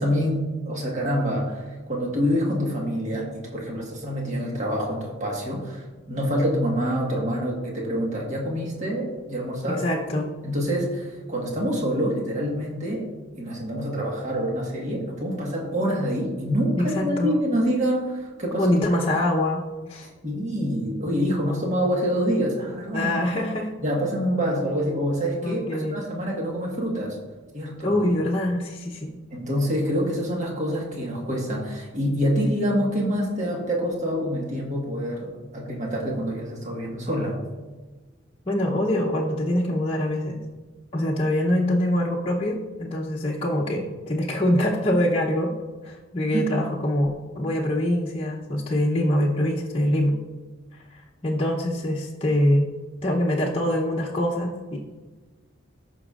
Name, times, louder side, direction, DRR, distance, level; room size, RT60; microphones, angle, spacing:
voice 1, 0.0-9.8 10.4-13.1 13.3-18.8 20.2-23.1 23.8-27.2 27.5-28.0 29.3-37.4 46.3-46.4, equal, 35° right, -2 dB, 1.5 m, -26 dB
voice 2, 9.7-10.3 16.8-17.4 18.6-19.6 19.9-20.1 22.9-23.7 25.4-26.0 27.8-29.2 38.5-40.4 40.9-45.5 45.8-50.2 50.7-52.7 53.0-54.8, left 1 dB, 30° left, -4 dB, 0.8 m, -24 dB
14.5 x 6.1 x 2.5 m, 1.3 s
head